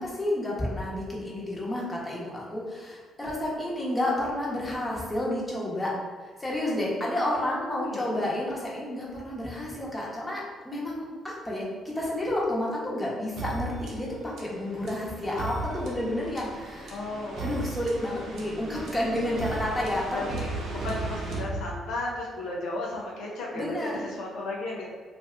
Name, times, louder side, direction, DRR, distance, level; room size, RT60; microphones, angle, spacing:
voice 1, 0.0-5.9 6.4-17.0 17.4-20.2 23.5-24.0, left 1 dB, 15° left, -5 dB, 0.9 m, -30 dB
voice 2, 7.6-8.3 16.9-17.6 20.1-24.9, left 2 dB, 85° left, -3 dB, 0.6 m, -35 dB
sound 1, 13.4-22.2, right 2 dB, 75° right, 0.7 m, -36 dB
2.6 x 2.5 x 3.3 m, 1.5 s
cardioid pair, 90°, 0 cm